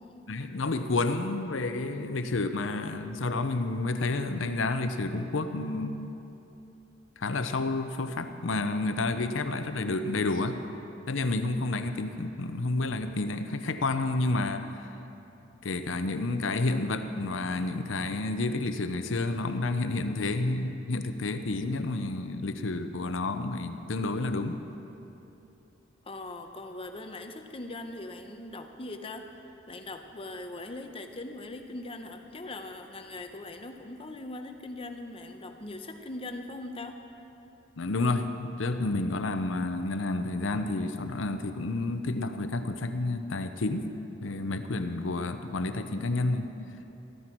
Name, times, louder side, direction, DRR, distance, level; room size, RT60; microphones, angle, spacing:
voice 1, 0.3-6.2 7.2-10.6 11.1-14.9 15.6-24.6 37.8-43.9 44.2-46.5, left 2 dB, 90° left, 9 dB, 0.7 m, -30 dB
voice 2, 26.0-37.0, left 2 dB, 30° left, 6 dB, 0.8 m, -41 dB
13.5 x 13.5 x 4.6 m, 2.9 s
head